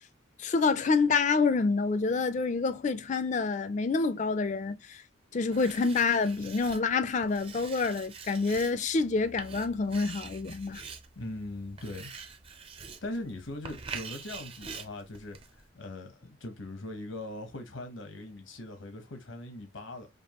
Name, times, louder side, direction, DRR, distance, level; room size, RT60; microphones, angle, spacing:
voice 1, 0.4-5.0 5.3-10.8, left 4 dB, 35° left, 0.4 m, -27 dB
Writing, 5.5-15.7, right 5 dB, 30° right, 0.5 m, -45 dB
voice 2, 11.2-12.1 13.0-20.1, left 1 dB, 80° left, 0.9 m, -40 dB
5.2 x 2.3 x 2.9 m
head